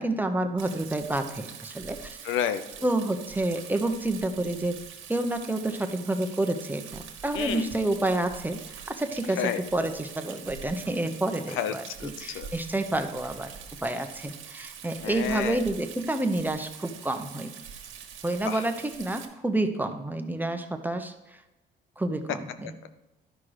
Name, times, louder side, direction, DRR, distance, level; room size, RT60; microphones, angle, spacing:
voice 1, 0.0-2.2 2.8-4.7 5.1-8.6 8.9-13.5 13.8-17.5 18.2-21.1 22.0-22.7, right 2 dB, 10° right, 6 dB, 1.1 m, -29 dB
Rain, 0.6-19.3, right 8 dB, 85° right, 1.4 m, -44 dB
voice 2, 2.2-2.6 7.3-7.7 9.4-9.6 11.5-12.5 15.0-15.6 18.5-18.7 22.8-22.9, left 9 dB, 90° left, 11 dB, 0.7 m, -30 dB
11.5 x 5.8 x 4.9 m, 1.0 s
cardioid pair, 90°, 20 cm